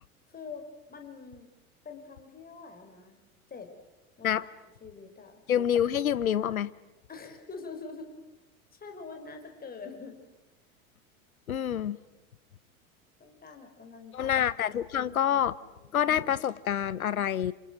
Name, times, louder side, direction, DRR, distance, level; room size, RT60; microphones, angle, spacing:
voice 1, 0.3-1.5 1.8-3.2 3.5-3.7 4.2-4.5 4.8-5.4 7.1-8.1 8.7-10.2 13.2-14.4 14.7-15.2 15.6-15.9, left 4 dB, 20° left, 4.8 m, -45 dB
voice 2, 5.5-6.7 11.5-12.0 14.1-15.5 15.9-17.5, left 9 dB, 75° left, 1.1 m, -27 dB
28.0 x 28.0 x 6.2 m
figure-of-eight pair, 80°, 43 cm